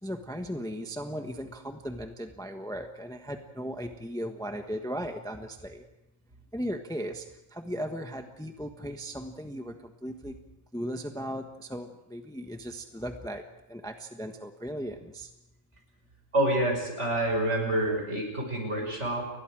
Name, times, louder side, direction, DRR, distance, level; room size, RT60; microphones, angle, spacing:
voice 1, 0.0-5.8 6.5-10.4 10.7-13.4 13.7-15.3, equal, 5° left, 5 dB, 1.2 m, -37 dB
voice 2, 16.3-19.3, right 1 dB, 55° right, 2 dB, 5.8 m, -27 dB
30.0 x 21.0 x 4.9 m, 0.90 s
omnidirectional pair, 1.4 m